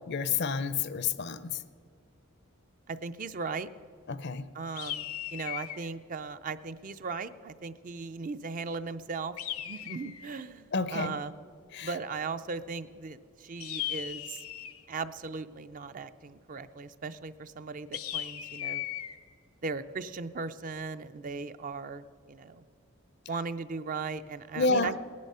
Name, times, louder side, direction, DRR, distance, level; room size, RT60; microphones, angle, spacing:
voice 1, 0.1-1.6 4.1-4.4 10.7-11.1 11.7-11.9 24.6-24.9, left 4 dB, 50° left, 14 dB, 0.5 m, -29 dB
voice 2, 2.9-3.7 4.5-9.3 9.6-11.3 11.8-14.4 14.9-18.9 19.6-22.7 23.3-25.0, right 4 dB, 40° right, 11 dB, 0.4 m, -38 dB
sound 1, 4.8-5.9 9.4-10.4 13.6-14.9 17.9-19.2, left 12 dB, 90° left, 0.8 m, -37 dB
18.5 x 10.5 x 5.5 m, 2.3 s
head